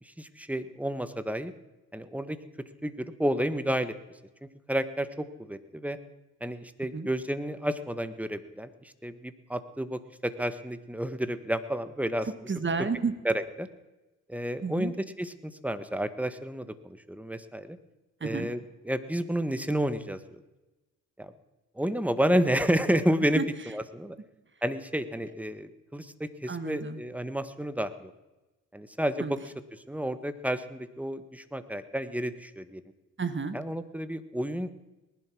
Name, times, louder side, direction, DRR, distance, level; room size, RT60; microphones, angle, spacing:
voice 1, 0.0-1.5 1.9-3.9 4.4-6.0 6.4-12.3 13.2-13.7 14.3-17.8 18.2-18.6 18.8-20.4 21.2-21.3 21.7-23.4 23.7-24.2 24.6-28.1 28.7-29.4 29.9-32.8 33.5-34.7, equal, 5° right, 12 dB, 1.5 m, -31 dB
voice 2, 12.5-13.1 14.6-14.9 18.2-18.5 23.3-23.4 26.5-27.0 29.2-29.3 33.2-33.6, right 4 dB, 35° right, 12 dB, 1.7 m, -31 dB
19.5 x 11.5 x 6.2 m, 1.1 s
supercardioid pair, 50°, 34 cm